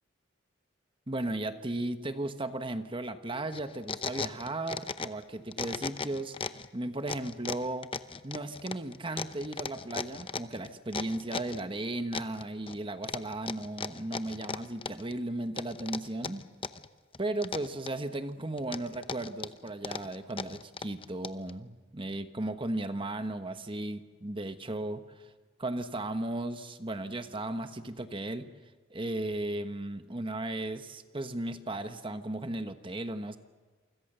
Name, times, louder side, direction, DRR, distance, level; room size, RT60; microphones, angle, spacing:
voice 1, 1.1-7.9 8.2-16.4 17.2-25.3 25.6-28.5 28.9-33.4, right 1 dB, 25° right, 9 dB, 1.2 m, -36 dB
sound 1, 3.5-5.2 5.5-6.7 7.1-11.6 12.1-12.8 13.0-15.1 15.6-16.9 17.1-18.1 18.6-21.5, left 5 dB, 25° left, 0.8 m, -37 dB
28.0 x 25.0 x 6.8 m, 1.4 s
head